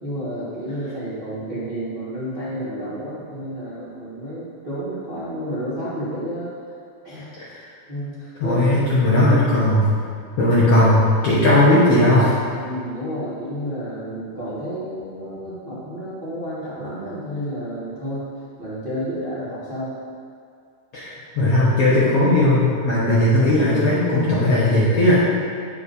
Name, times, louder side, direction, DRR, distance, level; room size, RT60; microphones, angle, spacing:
voice 1, 0.0-6.5 7.0-7.3 7.9-8.8 12.6-18.2 18.6-19.9 21.4-21.5 22.2-22.4, equal, 75° right, -12 dB, 0.5 m, -30 dB
voice 2, 8.4-9.9 10.4-12.4 20.9-25.1, left 1 dB, 65° left, -9 dB, 1.5 m, -17 dB
8.1 x 7.4 x 2.7 m, 2.3 s
omnidirectional pair, 4.2 m